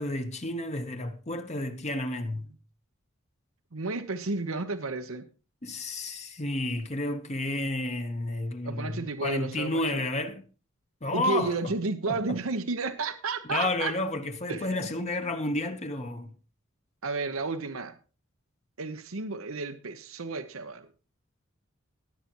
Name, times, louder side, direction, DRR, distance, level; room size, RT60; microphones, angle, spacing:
voice 1, 0.0-2.5 5.6-10.4 11.0-11.7 12.1-12.4 13.4-16.3, left 2 dB, 35° left, 1.1 m, -31 dB
voice 2, 3.7-5.3 8.6-10.0 11.1-13.9 14.5-14.9 15.2-15.3 17.0-18.0 18.8-20.9, right 3 dB, 80° right, 0.9 m, -32 dB
19.5 x 8.5 x 3.0 m
head